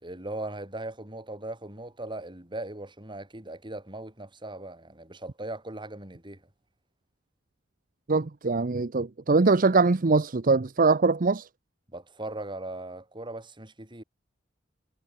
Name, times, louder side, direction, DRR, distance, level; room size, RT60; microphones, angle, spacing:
voice 1, 0.0-6.4 11.9-14.0, right 2 dB, 25° right, 3.9 m, -39 dB
voice 2, 8.1-11.5, right 3 dB, 50° right, 0.7 m, -22 dB
head